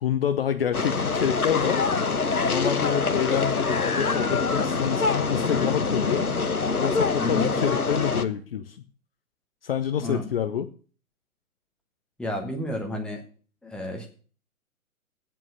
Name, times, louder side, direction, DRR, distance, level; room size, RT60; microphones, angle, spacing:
voice 1, 0.0-1.9 2.4-6.3 6.8-8.8 9.6-10.7, left 9 dB, 40° left, 9 dB, 0.8 m, -27 dB
sound 1, 0.7-8.2, left 4 dB, 80° left, 1.3 m, -25 dB
voice 2, 7.2-7.6 10.0-10.2 12.2-13.2 13.6-14.1, left 2 dB, ahead, 1 dB, 1.2 m, -30 dB
9.1 x 7.7 x 8.3 m, 0.41 s
figure-of-eight pair, 125°, 43 cm